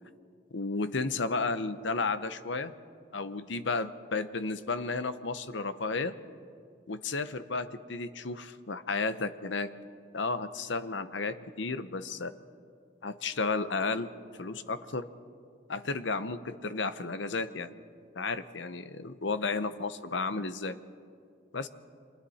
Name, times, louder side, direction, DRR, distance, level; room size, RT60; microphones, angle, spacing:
voice 1, 0.5-2.7 3.1-6.1 6.9-9.7 10.1-12.3 13.0-14.1 14.4-15.1 15.7-17.7 18.2-20.8 21.5-21.7, left 3 dB, 70° left, 12 dB, 0.9 m, -33 dB
30.0 x 25.0 x 4.3 m, 2.3 s
head